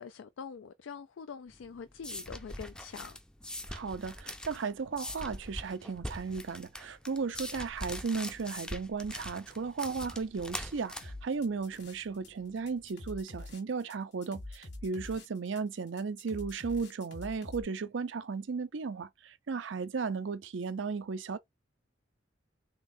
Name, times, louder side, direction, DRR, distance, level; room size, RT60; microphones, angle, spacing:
voice 1, 0.0-3.2, left 6 dB, 85° left, 0.4 m, -44 dB
sound 1, 1.5-12.9, left 1 dB, 5° left, 0.4 m, -43 dB
voice 2, 3.7-21.4, right 5 dB, 75° right, 0.5 m, -35 dB
sound 2, 11.0-12.3 12.6-17.6, left 2 dB, 60° left, 1.5 m, -46 dB
3.8 x 3.6 x 2.6 m
head